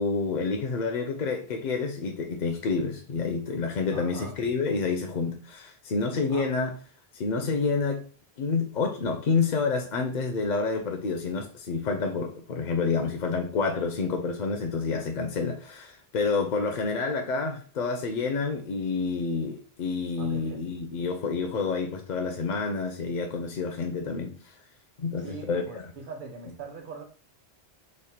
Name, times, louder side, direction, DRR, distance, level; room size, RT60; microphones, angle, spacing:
voice 1, 0.0-6.7 7.1-8.0 8.4-24.3 25.0-25.8, left 4 dB, 55° left, 0.6 m, -28 dB
voice 2, 3.9-4.5 6.3-6.5 20.2-20.6 25.1-27.0, right 4 dB, 55° right, 1.0 m, -41 dB
3.2 x 2.1 x 4.2 m
omnidirectional pair, 1.1 m